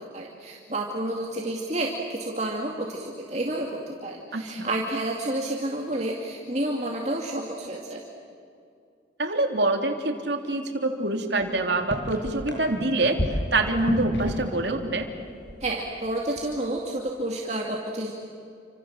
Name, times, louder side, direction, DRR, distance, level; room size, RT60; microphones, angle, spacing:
voice 1, 0.0-8.0 15.6-18.1, right 1 dB, 35° right, -1 dB, 2.4 m, -30 dB
voice 2, 4.3-4.7 9.2-15.1, right 2 dB, 70° right, 4 dB, 3.2 m, -25 dB
sound 1, 11.4-11.5 11.7-14.6 14.9-16.0 16.3-16.6, equal, 75° left, 5.9 m, -31 dB
29.5 x 26.5 x 7.5 m, 2.5 s
head